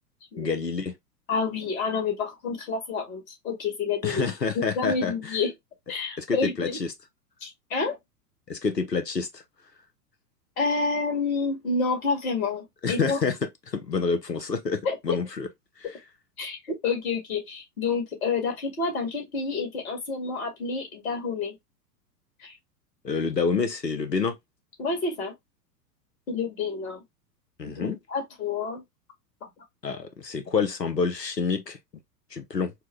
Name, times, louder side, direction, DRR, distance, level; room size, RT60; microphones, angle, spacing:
voice 1, 0.4-0.9 4.0-5.4 6.2-6.9 8.5-9.4 12.8-13.4 13.7-15.5 23.0-24.4 27.6-28.0 29.8-31.8 32.3-32.7, left 5 dB, 85° left, 0.9 m, -28 dB
voice 2, 1.3-4.3 4.5-5.5 5.9-6.8 7.4-8.0 10.6-13.2 14.8-15.2 16.4-21.5 22.4-22.5 24.8-25.3 26.3-27.0 27.7-28.8, left 4 dB, 60° left, 2.2 m, -29 dB
4.6 x 2.2 x 3.2 m
figure-of-eight pair, 95°, 48 cm